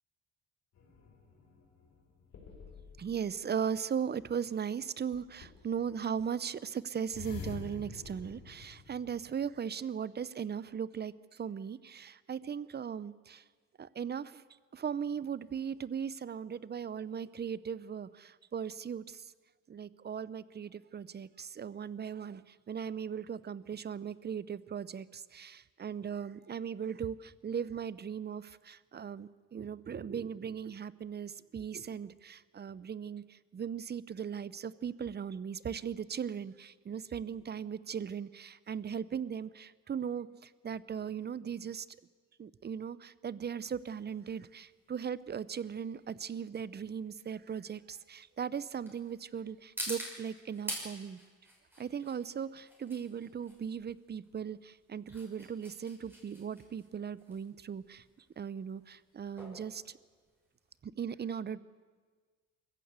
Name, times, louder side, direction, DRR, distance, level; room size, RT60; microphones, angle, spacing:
sound 1, 0.7-3.2 5.1-5.8 7.1-9.5, left 5 dB, 65° left, 4.7 m, -48 dB
voice 1, 3.0-13.4 13.8-14.4 14.7-19.3 19.7-41.9 42.4-51.2 51.8-58.0 58.4-60.0 60.8-61.6, right 7 dB, 35° right, 18 dB, 0.7 m, -38 dB
sound 2, 44.1-60.8, equal, 5° right, 5.7 m, -47 dB
23.0 x 14.5 x 8.1 m, 1.5 s
cardioid pair, 90°, 30 cm